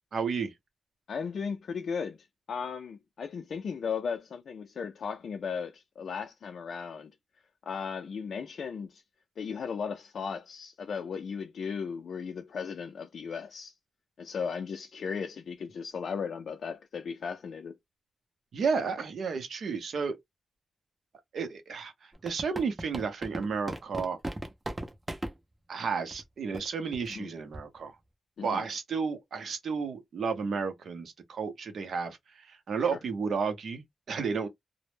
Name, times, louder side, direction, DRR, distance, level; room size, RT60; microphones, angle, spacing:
voice 1, 0.1-0.5 18.5-20.2 21.3-24.2 25.7-28.0 28.4-34.5, right 5 dB, 75° right, 0.6 m, -32 dB
voice 2, 1.1-7.2 7.6-9.0 9.4-13.7 14.2-17.8 27.1-27.3 28.4-28.6 32.7-32.9, left 6 dB, 70° left, 0.3 m, -36 dB
sound 1, 22.1-25.3 26.1-26.2 26.5-26.7 26.9-27.1 27.5-27.8, right 1 dB, 15° right, 0.4 m, -37 dB
2.0 x 2.0 x 3.0 m
wide cardioid pair, 155°, 0 cm